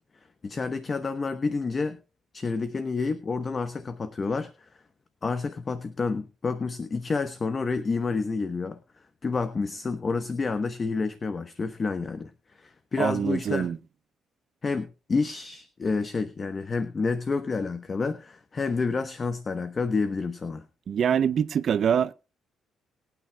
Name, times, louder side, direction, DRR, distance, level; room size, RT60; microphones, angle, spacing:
voice 1, 0.4-2.0 2.3-4.5 5.2-8.8 9.2-12.3 12.6-13.7 14.6-20.6, left 4 dB, 35° left, 1.0 m, -29 dB
voice 2, 13.0-13.8 20.9-22.1, right 8 dB, 60° right, 0.7 m, -24 dB
22.0 x 9.2 x 2.3 m
cardioid pair, 90°, 0 cm